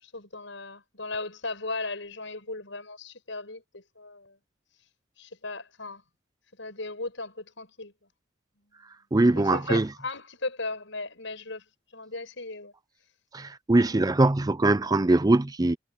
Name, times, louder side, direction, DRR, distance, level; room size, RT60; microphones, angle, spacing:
voice 1, 0.0-4.4 5.2-6.0 6.6-7.9 9.4-11.6 11.9-12.7 13.9-14.1, left 3 dB, 65° left, 7.0 m, -37 dB
voice 2, 9.1-9.9 13.3-15.8, right 2 dB, 20° right, 0.5 m, -22 dB
head